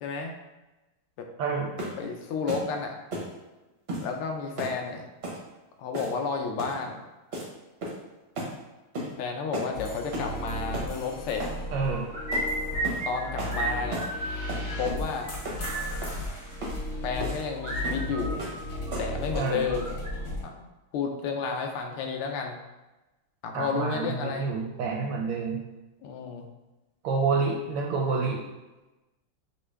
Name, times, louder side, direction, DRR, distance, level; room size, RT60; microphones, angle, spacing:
voice 1, 0.0-0.3 1.2-1.3 2.0-2.9 4.0-5.1 5.8-7.0 9.2-11.4 13.0-14.1 14.8-15.4 17.0-18.5 19.0-20.0 20.4-20.7 20.9-22.6 23.4-24.5 26.0-26.5, left 5 dB, 80° left, 3 dB, 1.5 m, -31 dB
voice 2, 1.4-1.7 11.7-12.0 19.3-19.6 23.5-25.6 27.0-28.4, right 4 dB, 75° right, 0 dB, 1.2 m, -28 dB
sound 1, 1.8-2.0 2.5-2.7 3.1-3.3 3.9-4.1 4.6-4.8 5.2-5.4 5.9-6.2 6.6-6.8 7.3-7.5 7.8-8.1 8.4-8.5 8.9-9.1 9.5-9.7 10.1-10.3 10.7-10.9 11.4-11.6 12.3-12.5 12.8-13.0 13.4-13.6 13.9-14.1 14.5-15.0 15.4-15.6 16.0-16.2 16.6-16.8 17.2-17.4 17.8-18.1 18.4-18.6 18.9-19.2, right 1 dB, 55° right, 0.7 m, -34 dB
sound 2, 9.7-20.4, left 1 dB, 55° left, 0.8 m, -35 dB
sound 3, 11.9-13.2 13.5-13.7 14.0-14.9 15.2-15.3 15.6-15.9 17.6-19.0 19.3-20.1, right 2 dB, 90° right, 0.5 m, -33 dB
5.7 x 2.3 x 3.2 m, 1.1 s
omnidirectional pair, 2.4 m